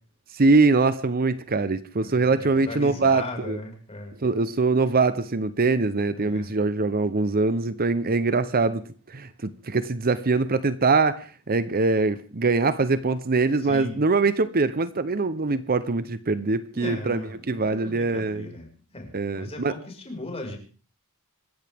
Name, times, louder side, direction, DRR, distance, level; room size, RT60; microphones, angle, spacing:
voice 1, 0.3-3.6 4.2-18.5 19.1-19.7, right 3 dB, 40° right, 0.8 m, -23 dB
voice 2, 2.0-4.2 6.1-6.5 13.6-13.9 16.7-18.7 18.9-20.6, left 2 dB, 30° left, 5.4 m, -37 dB
26.0 x 14.5 x 3.6 m
head